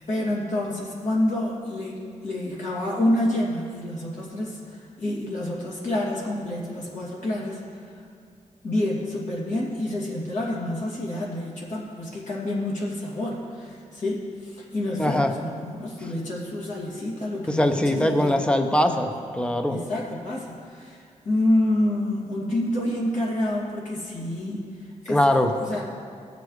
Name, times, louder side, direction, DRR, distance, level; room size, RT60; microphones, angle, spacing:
voice 1, 0.0-8.0 8.6-18.4 18.8-19.0 19.7-25.2 25.5-25.8, left 1 dB, 65° left, -5 dB, 2.5 m, -28 dB
voice 2, 15.0-15.3 17.5-19.8 25.1-25.5, left 1 dB, 10° left, 6 dB, 0.7 m, -22 dB
17.0 x 6.9 x 3.3 m, 2.3 s
cardioid pair, 90°, 13 cm